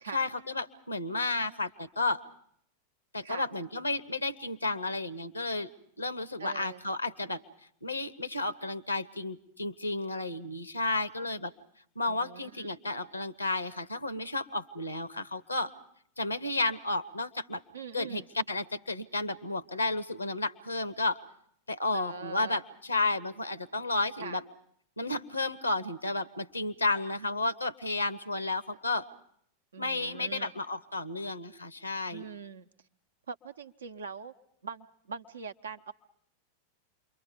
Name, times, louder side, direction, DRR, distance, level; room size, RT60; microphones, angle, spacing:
voice 1, 0.1-2.2 3.1-5.7 6.0-7.4 7.8-11.5 12.0-15.7 16.2-17.6 17.9-21.2 21.7-24.4 25.0-29.1 29.8-32.3, left 2 dB, 85° left, 17 dB, 0.8 m, -32 dB
voice 2, 6.4-6.8 12.0-12.7 17.7-18.3 21.9-22.6 24.2-24.4 29.7-30.5 32.1-32.7 33.3-34.3 34.6-35.9, right 5 dB, 70° right, 9 dB, 0.8 m, -42 dB
28.5 x 23.5 x 5.2 m, 0.66 s
figure-of-eight pair, 90°, 0 cm